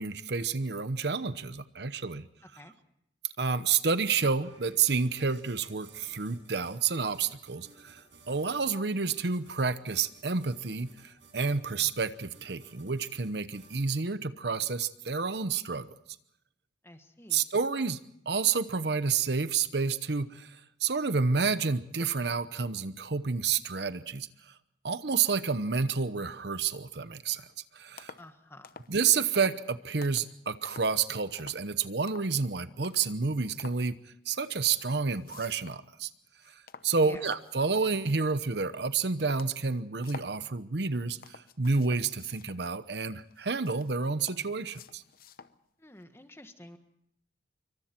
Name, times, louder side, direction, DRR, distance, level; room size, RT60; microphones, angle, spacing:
voice 1, 0.0-2.3 3.4-15.9 17.3-18.0 18.3-20.6 20.8-24.3 24.8-27.5 27.7-28.1 28.9-34.0 34.3-36.1 36.8-45.0, right 5 dB, 65° right, 13 dB, 0.9 m, -29 dB
voice 2, 2.4-2.7 16.8-17.4 28.2-28.8 37.0-37.3 45.8-46.8, left 1 dB, 15° left, 8 dB, 1.5 m, -50 dB
sound 1, 4.1-14.1, right 4 dB, 80° right, 7.1 m, -57 dB
sound 2, 27.5-27.6 28.0-28.3 28.6-29.0 29.3-29.6 30.0-30.3 30.7-31.0 31.4-31.7 32.1-32.4 32.8-33.1 33.6-33.9 34.6-35.9 36.2-38.4 38.9-39.0 39.3-40.4 40.9-42.7 43.2-45.6 46.0-46.1, left 5 dB, 55° left, 0.9 m, -50 dB
26.5 x 24.0 x 4.5 m, 0.72 s
head